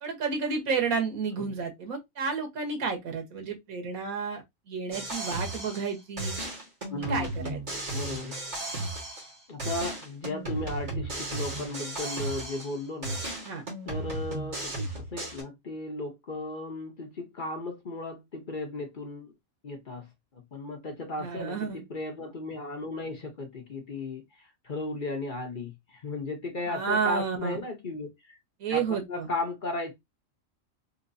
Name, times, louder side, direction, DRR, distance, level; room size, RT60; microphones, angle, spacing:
voice 1, 0.0-6.3 7.1-7.6 13.4-13.6 21.2-21.8 26.7-27.6 28.6-29.3, right 5 dB, 80° right, 1.6 m, -31 dB
sound 1, 4.9-5.9 6.2-9.3 9.6-12.8 13.0-15.4, right 2 dB, 35° right, 1.6 m, -35 dB
voice 2, 6.9-7.6 7.9-8.4 9.5-13.2 13.8-19.3 19.6-28.4 28.7-29.9, left 2 dB, 45° left, 0.8 m, -36 dB
3.7 x 2.9 x 2.6 m
omnidirectional pair, 1.5 m